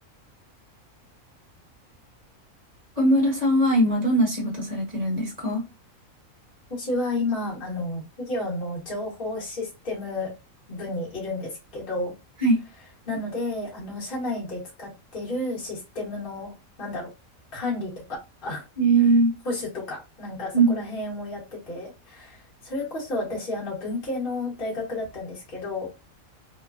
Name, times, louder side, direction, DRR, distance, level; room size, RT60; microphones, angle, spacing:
voice 1, 3.0-5.6 12.4-12.6 18.8-19.3 20.5-20.9, right 2 dB, 30° right, 1.2 m, -21 dB
voice 2, 6.7-10.3 10.7-12.1 13.1-17.1 17.5-17.9 18.4-18.6 19.4-25.9, left 2 dB, 40° left, 1.3 m, -31 dB
3.1 x 2.2 x 2.3 m
omnidirectional pair, 1.5 m